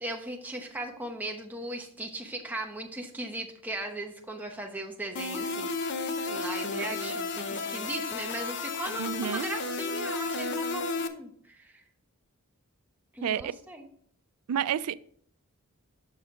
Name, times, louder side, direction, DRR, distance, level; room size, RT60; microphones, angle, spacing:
voice 1, 0.0-11.7 13.1-13.9, right 1 dB, 10° right, 1 dB, 0.9 m, -38 dB
sound 1, 5.2-11.1, left 3 dB, 50° left, 0.6 m, -33 dB
voice 2, 9.0-9.5 13.2-13.5 14.5-14.9, right 9 dB, 85° right, 17 dB, 0.4 m, -29 dB
7.0 x 6.3 x 3.6 m, 0.62 s
head